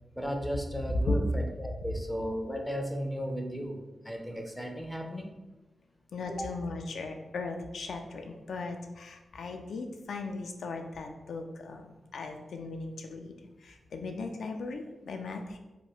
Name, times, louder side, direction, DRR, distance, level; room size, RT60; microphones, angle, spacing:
voice 1, 0.1-5.3 6.3-6.5, equal, 5° left, 2 dB, 0.4 m, -35 dB
voice 2, 6.1-15.6, left 3 dB, 85° left, 4 dB, 0.3 m, -37 dB
2.8 x 2.2 x 3.1 m, 1.1 s
cardioid pair, 75°, 0 cm